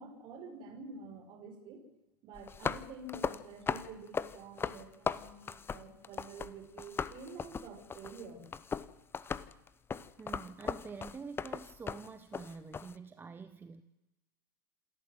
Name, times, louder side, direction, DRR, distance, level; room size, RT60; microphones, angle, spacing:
voice 1, 0.0-1.8 2.2-8.5, right 3 dB, 45° right, 5.5 m, -48 dB
sound 1, 2.3-6.5 6.8-12.9, left 6 dB, 20° left, 0.9 m, -38 dB
voice 2, 10.2-13.8, right 5 dB, 20° right, 1.1 m, -47 dB
27.5 x 13.0 x 7.8 m
figure-of-eight pair, 85°, 11 cm